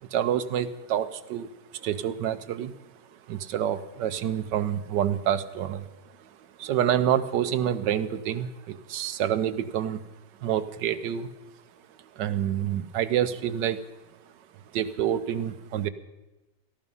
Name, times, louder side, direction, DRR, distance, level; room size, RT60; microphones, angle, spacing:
voice 1, 0.0-2.7 3.1-5.9 6.2-6.3 6.6-10.0 10.4-11.3 12.1-13.8 14.7-15.9, right 10 dB, 75° right, 11 dB, 1.4 m, -27 dB
17.5 x 13.5 x 5.5 m, 1.0 s
omnidirectional pair, 2.0 m